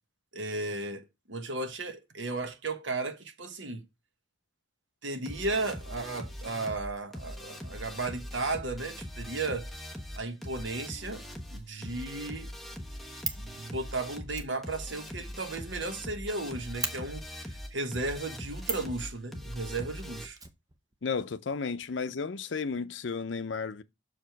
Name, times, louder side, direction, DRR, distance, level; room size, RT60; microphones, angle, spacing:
voice 1, 0.3-3.8 5.0-9.7 10.2-11.2 11.5-12.5 13.4-20.4, right 2 dB, 75° right, 1.2 m, -35 dB
sound 1, 5.3-20.3, equal, ahead, 1.1 m, -42 dB
Fire, 12.8-13.5 14.3-16.1 16.3-16.4 16.8-16.9 18.6-18.9 20.4-21.2 21.5-21.6 21.8-21.9, right 4 dB, 20° right, 0.7 m, -37 dB
voice 2, 21.0-23.8, left 5 dB, 75° left, 0.6 m, -33 dB
6.5 x 4.8 x 4.5 m
head